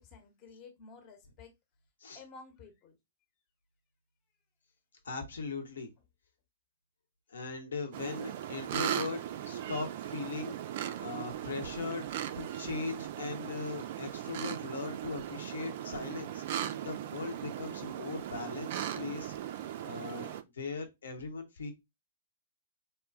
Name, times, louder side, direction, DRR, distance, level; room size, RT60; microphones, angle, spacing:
voice 1, 0.0-1.5 2.1-2.9, left 4 dB, 30° left, 0.8 m, -52 dB
voice 2, 5.0-5.9 7.3-10.6 11.0-12.1 12.3-19.3 19.8-21.7, left 4 dB, 65° left, 0.8 m, -39 dB
sound 1, 7.9-20.4, right 11 dB, 45° right, 0.3 m, -38 dB
4.2 x 2.2 x 2.4 m
figure-of-eight pair, 110°, 0 cm